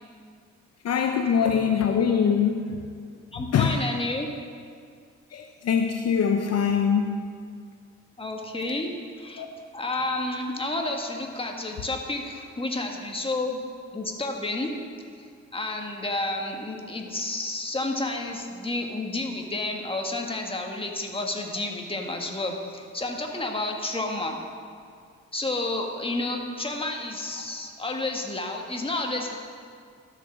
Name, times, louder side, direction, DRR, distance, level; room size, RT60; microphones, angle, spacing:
voice 1, 0.8-2.6 3.5-3.7 5.3-7.2 9.4-9.5, left 7 dB, 55° left, 4 dB, 0.8 m, -23 dB
voice 2, 3.3-4.3 8.2-9.4 9.7-13.6 13.9-14.7 15.5-24.4 25.3-29.4, left 2 dB, 20° left, 2 dB, 1.8 m, -30 dB
13.0 x 8.2 x 6.4 m, 2.1 s
cardioid pair, 90°, 30 cm